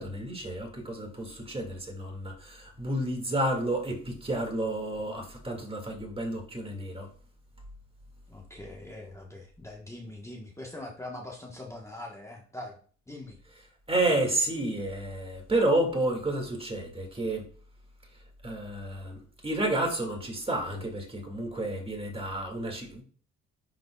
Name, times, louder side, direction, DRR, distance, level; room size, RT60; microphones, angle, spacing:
voice 1, 0.0-7.1 13.9-17.4 18.4-19.2 19.4-23.0, right 1 dB, 20° right, 2.0 m, -30 dB
voice 2, 8.3-12.7 13.1-13.4, left 1 dB, 10° left, 1.2 m, -42 dB
10.5 x 3.9 x 2.3 m
cardioid pair, 90°, 30 cm